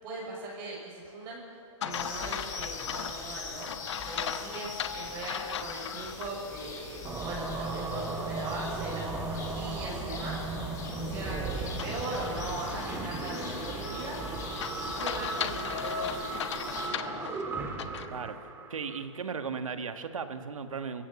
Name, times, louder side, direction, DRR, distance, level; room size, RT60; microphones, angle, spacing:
voice 1, 0.0-1.4 1.8-3.7 4.1-10.5 10.9-14.2 14.8-17.3, right 2 dB, 30° right, -3 dB, 6.3 m, -39 dB
sound 1, 1.8-6.3 6.8-6.9 11.8-18.1, left 9 dB, 60° left, 1.4 m, -38 dB
sound 2, 1.9-16.9, left 4 dB, 20° left, 3.9 m, -43 dB
sound 3, 7.0-19.0, right 3 dB, 15° right, 1.8 m, -36 dB
voice 2, 18.7-21.0, right 5 dB, 85° right, 8 dB, 1.8 m, -36 dB
25.5 x 15.5 x 8.4 m, 2.7 s
hypercardioid pair, 145°, 17 cm